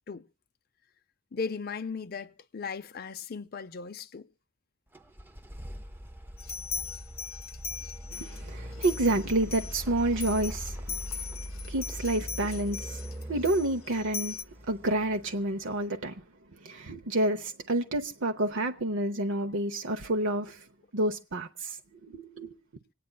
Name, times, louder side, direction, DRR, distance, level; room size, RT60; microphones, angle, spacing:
voice 1, 1.3-4.3, left 5 dB, 45° left, 0.5 m, -37 dB
sound 1, 4.9-15.7, equal, 10° right, 0.6 m, -41 dB
sound 2, 6.4-8.4 8.8-14.4, left 6 dB, 75° left, 0.8 m, -39 dB
voice 2, 8.1-11.0 11.7-14.4 14.6-16.2 16.6-20.6 20.9-22.6, right 1 dB, 65° right, 0.8 m, -29 dB
25.5 x 9.3 x 2.2 m
head